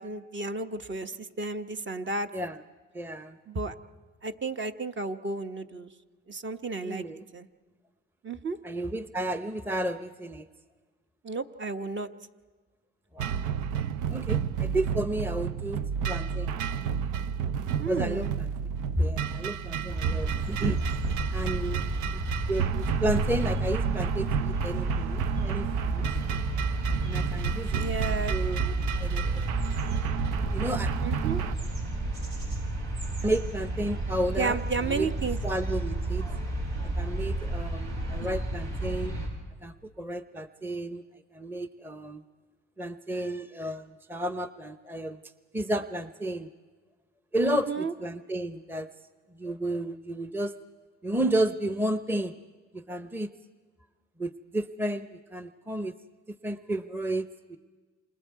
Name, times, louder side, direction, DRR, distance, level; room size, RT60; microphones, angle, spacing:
voice 1, 0.0-2.3 3.5-3.7 4.2-5.9 6.3-7.0 7.3-7.5 8.2-8.6 11.2-12.1 17.8-18.3 27.7-28.4 31.0-31.4 34.4-35.4 47.4-47.9, right 4 dB, 40° right, 7 dB, 1.1 m, -32 dB
voice 2, 2.9-3.4 6.8-7.2 8.6-10.5 13.1-13.3 14.1-15.8 16.1-16.6 17.9-18.5 19.0-20.8 21.3-22.2 22.5-26.0 27.0-27.8 28.1-28.7 29.0-29.5 30.5-30.9 33.2-35.1 35.4-36.2 36.8-39.2 39.6-41.0 41.3-42.2 42.8-45.2 45.5-46.5 47.3-48.9 49.3-50.6 51.0-52.4 52.7-53.3 54.2-55.9 56.3-57.6, right 1 dB, 5° right, 11 dB, 0.7 m, -32 dB
sound 1, 13.2-31.5, right 7 dB, 90° right, 0.6 m, -31 dB
sound 2, 19.9-39.3, right 2 dB, 70° right, 7.8 m, -31 dB
28.5 x 26.5 x 4.7 m, 1.4 s
cardioid pair, 90°, 30 cm